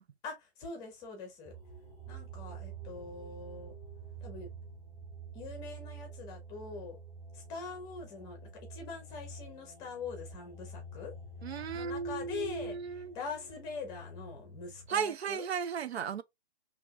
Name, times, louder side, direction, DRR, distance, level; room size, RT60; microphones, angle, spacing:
voice 1, 0.2-1.5 2.1-3.7 4.2-4.5 5.3-7.0 7.3-11.1 11.7-12.8 13.1-15.5, left 4 dB, 10° left, 0.8 m, -43 dB
sound 1, 1.4-14.9, right 2 dB, 10° right, 1.5 m, -48 dB
voice 2, 11.4-13.2 14.9-16.2, right 7 dB, 70° right, 0.6 m, -35 dB
4.5 x 2.9 x 2.4 m
hypercardioid pair, 155°, 33 cm